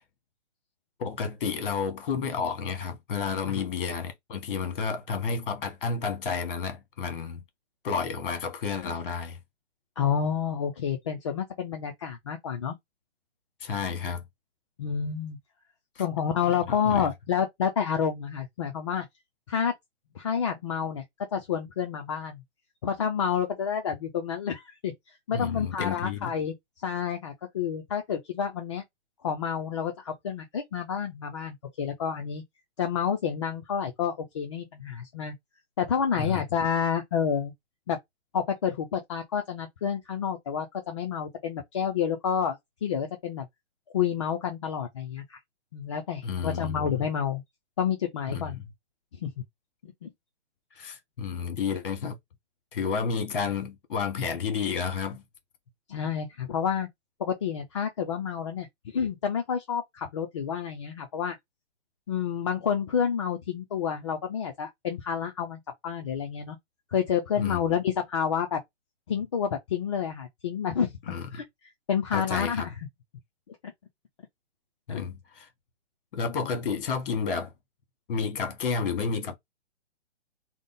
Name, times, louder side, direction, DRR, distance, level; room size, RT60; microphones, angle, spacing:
voice 1, 1.0-7.4 7.8-9.4 13.6-14.2 16.0-16.1 16.5-17.1 25.3-26.3 36.2-36.4 46.2-47.0 48.3-48.6 50.7-52.2 52.7-55.2 67.4-67.6 71.1-71.4 72.1-72.7 74.9-75.5 76.1-77.5 78.1-79.4, left 5 dB, 50° left, 1.3 m, -31 dB
voice 2, 10.0-12.8 14.8-15.4 16.0-19.1 19.5-19.7 20.2-21.0 21.3-22.4 22.8-24.9 25.3-26.5 26.8-28.8 29.2-32.4 32.8-35.3 35.8-37.5 37.9-38.0 38.3-43.5 43.9-45.4 45.7-47.4 47.8-48.6 49.2-49.3 49.8-50.1 55.9-56.9 57.2-58.7 58.9-61.4 62.1-66.6 66.9-68.6 69.1-70.9 71.3-71.4 71.9-72.7 73.5-73.6 74.9-75.0, left 7 dB, 25° left, 0.4 m, -29 dB
3.6 x 2.1 x 3.9 m
hypercardioid pair, 145°, 35 cm